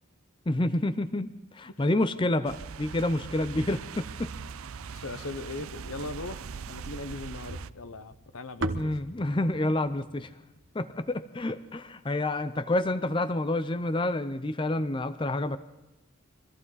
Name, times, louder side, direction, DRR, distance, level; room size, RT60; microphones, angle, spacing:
voice 1, 0.5-4.3 8.7-10.3 10.7-15.6, left 1 dB, 25° left, 11 dB, 0.5 m, -28 dB
sound 1, 2.4-7.7, right 6 dB, 85° right, 0.5 m, -41 dB
voice 2, 4.9-9.0, left 2 dB, 85° left, 11 dB, 1.0 m, -39 dB
sound 2, 7.5-11.8, right 1 dB, 65° right, 1.1 m, -38 dB
24.0 x 14.5 x 4.1 m, 1.0 s
head